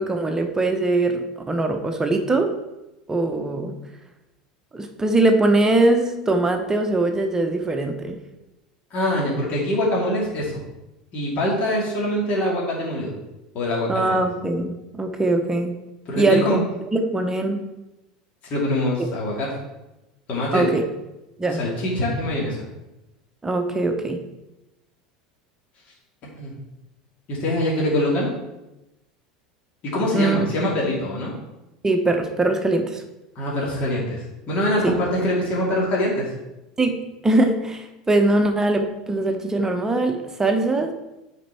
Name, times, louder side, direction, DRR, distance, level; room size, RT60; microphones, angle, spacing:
voice 1, 0.0-2.6 3.1-3.8 4.7-8.2 13.9-15.7 16.2-16.6 16.9-17.6 20.5-20.8 21.4-21.7 23.4-24.2 30.1-30.9 31.8-33.0 34.8-35.0 36.8-40.9, right 2 dB, 15° right, 5 dB, 1.0 m, -21 dB
voice 2, 8.9-10.5 11.1-13.1 13.5-14.2 16.1-16.6 18.5-19.5 20.3-20.7 21.6-22.6 26.4-26.5 27.3-28.3 29.8-31.3 33.3-36.3, left 1 dB, 45° left, -5 dB, 2.5 m, -24 dB
9.2 x 4.5 x 4.4 m, 0.98 s
hypercardioid pair, 80°, 4 cm